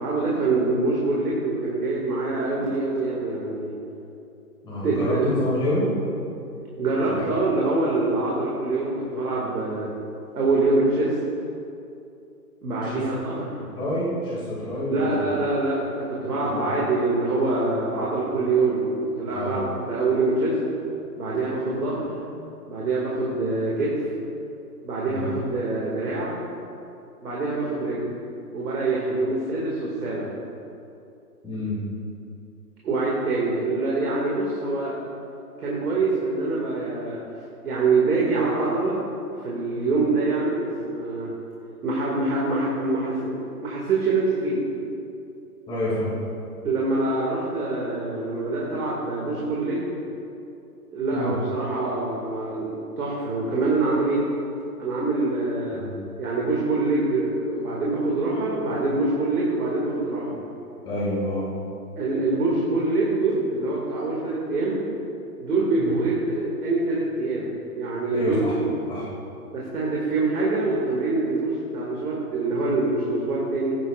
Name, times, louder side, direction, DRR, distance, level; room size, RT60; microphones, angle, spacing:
voice 1, 0.0-3.7 4.8-5.2 6.8-9.9 10.3-11.1 12.6-13.5 14.9-15.9 16.2-20.6 21.2-22.1 22.7-24.1 24.8-26.4 27.2-28.0 28.5-30.3 32.8-34.9 35.6-37.2 37.6-39.0 39.4-41.3 41.8-43.3 43.6-44.6 46.6-50.0 50.9-54.2 54.8-55.8 56.2-60.4 62.0-64.9 65.4-68.4 68.8-68.9 69.5-73.8, right 3 dB, 65° right, -5 dB, 2.5 m, -25 dB
voice 2, 4.6-5.9 7.1-7.2 12.7-13.1 13.5-15.3 16.2-16.7 19.3-19.6 25.1-25.3 31.4-31.8 45.7-46.1 51.1-51.4 55.7-55.9 60.8-61.5 65.8-65.9 68.1-68.5 68.9-69.0, left 1 dB, 10° left, -8 dB, 2.6 m, -28 dB
15.5 x 10.0 x 2.5 m, 2.7 s
hypercardioid pair, 150°, 48 cm